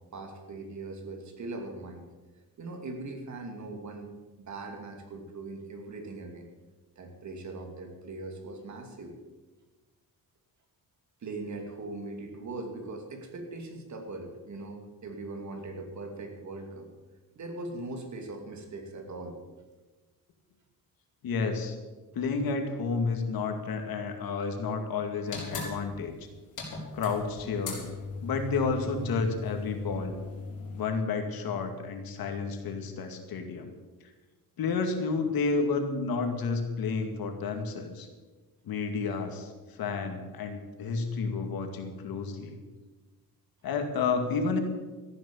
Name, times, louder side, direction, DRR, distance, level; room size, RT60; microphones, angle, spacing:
voice 1, 0.1-2.1 2.6-4.1 4.4-6.5 7.0-9.1 11.2-16.9 17.4-19.4, right 2 dB, 50° right, 4 dB, 2.6 m, -40 dB
voice 2, 21.2-21.8 22.1-26.1 26.9-27.8 28.2-30.2 30.7-33.7 34.6-38.1 38.6-42.5 43.6-44.6, left 4 dB, 75° left, 5 dB, 2.2 m, -31 dB
sound 1, 25.3-30.8, left 3 dB, 55° left, 4.4 m, -39 dB
14.0 x 11.0 x 7.1 m, 1.3 s
cardioid pair, 145°, 36 cm